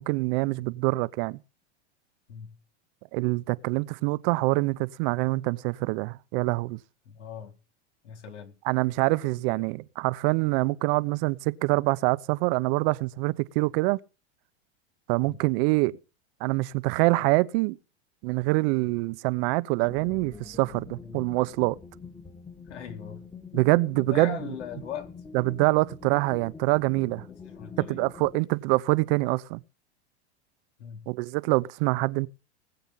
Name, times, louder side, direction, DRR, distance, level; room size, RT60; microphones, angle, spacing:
voice 1, 0.0-1.4 3.1-6.8 8.6-14.0 15.1-16.0 16.4-17.8 18.2-21.8 23.5-24.3 25.3-27.3 27.9-29.6 31.1-32.3, right 23 dB, 55° right, 0.9 m, -25 dB
voice 2, 7.0-7.5 8.0-8.6 15.2-15.4 21.0-21.3 22.7-23.3 23.9-25.1 27.3-28.0 30.8-31.1, left 7 dB, 90° left, 4.3 m, -40 dB
sound 1, 19.9-28.4, left 5 dB, 10° left, 1.6 m, -45 dB
20.0 x 8.0 x 5.8 m
hypercardioid pair, 120°, 34 cm